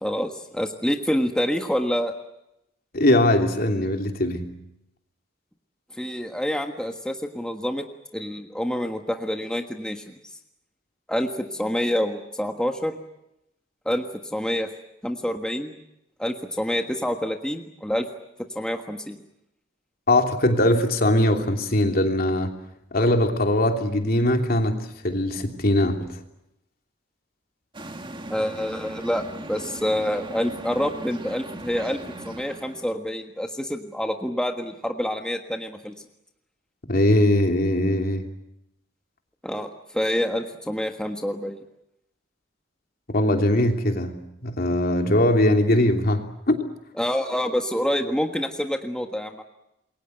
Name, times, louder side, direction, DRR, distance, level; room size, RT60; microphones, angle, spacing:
voice 1, 0.0-2.1 5.9-7.8 8.1-10.0 11.1-13.0 13.8-14.7 15.0-15.7 16.2-18.0 18.5-19.2 28.3-32.0 32.2-35.9 39.4-41.6 47.0-49.4, equal, 5° left, 4 dB, 1.5 m, -27 dB
voice 2, 2.9-4.5 20.1-22.5 22.9-26.1 36.9-38.3 43.1-46.6, left 1 dB, 55° left, 4 dB, 3.0 m, -21 dB
sound 1, 27.7-33.0, right 1 dB, 25° right, 2.0 m, -38 dB
28.0 x 22.5 x 8.0 m, 0.85 s
head